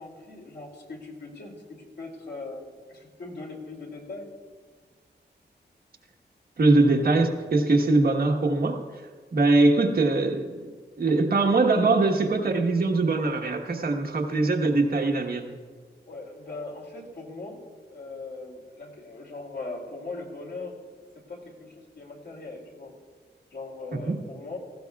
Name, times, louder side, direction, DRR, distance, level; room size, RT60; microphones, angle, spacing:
voice 1, 0.0-2.6 2.9-4.3 16.0-17.6 17.9-20.8 21.3-22.9 23.5-24.6, left 3 dB, 70° left, -1 dB, 2.7 m, -40 dB
voice 2, 6.6-8.8 9.3-15.6 23.9-24.2, right 3 dB, 55° right, 1 dB, 1.3 m, -22 dB
18.0 x 16.0 x 2.4 m, 1.6 s
wide cardioid pair, 165°, 18 cm